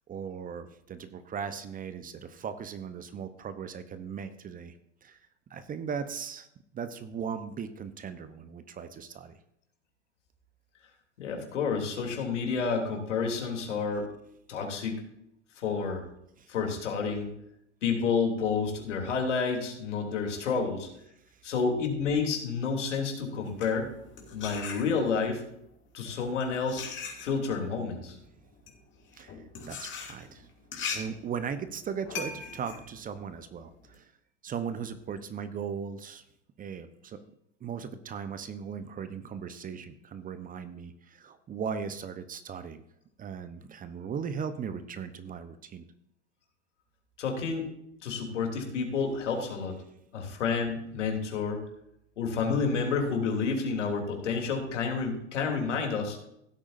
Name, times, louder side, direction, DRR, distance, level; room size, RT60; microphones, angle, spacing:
voice 1, 0.1-4.7 5.0-5.2 5.5-6.5 6.7-9.4 16.4-16.5 29.2-29.4 29.7-30.5 30.9-34.1 34.4-36.2 36.6-37.2 37.6-42.8 43.2-45.9, right 7 dB, 25° right, 11 dB, 0.9 m, -38 dB
voice 2, 11.2-14.1 14.5-15.0 15.6-16.0 16.5-17.3 17.8-20.9 21.4-23.9 24.3-25.4 25.9-26.9 27.2-28.2 47.2-47.7 48.0-49.8 50.1-51.6 52.2-56.2, left 5 dB, 80° left, 2 dB, 3.2 m, -29 dB
sound 1, 23.3-25.3 26.1-34.0, left 5 dB, 30° left, 2.7 m, -40 dB
16.5 x 8.5 x 2.6 m, 0.78 s
hypercardioid pair, 100°, 36 cm